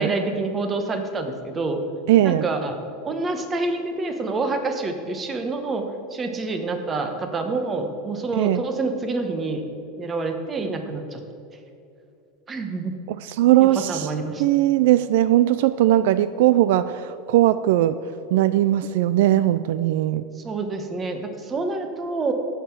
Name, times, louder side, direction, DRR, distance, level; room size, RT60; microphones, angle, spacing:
voice 1, 0.0-1.8 2.2-2.7 3.0-5.8 6.1-9.6 10.0-11.2 12.5-12.9 13.6-14.4 20.4-22.3, right 3 dB, 20° right, 6 dB, 1.1 m, -27 dB
voice 2, 2.1-2.5 8.4-8.6 13.2-14.1 14.4-18.0 18.3-20.2, right 13 dB, 70° right, 14 dB, 0.3 m, -19 dB
14.5 x 5.7 x 5.9 m, 2.6 s
supercardioid pair, 150°, 0 cm